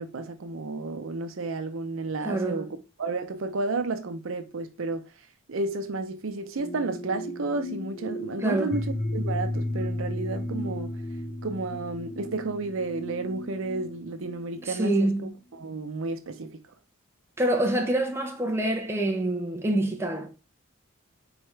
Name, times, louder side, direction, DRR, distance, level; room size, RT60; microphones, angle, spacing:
voice 1, 0.0-2.7 3.0-5.1 5.5-10.9 11.4-16.6, right 3 dB, 75° right, 0.6 m, -32 dB
voice 2, 2.2-2.7 8.4-8.8 14.6-15.4 17.4-20.3, right 1 dB, 10° right, 0.7 m, -26 dB
sound 1, 6.6-14.7, left 1 dB, 55° left, 1.6 m, -34 dB
4.3 x 3.5 x 3.1 m
head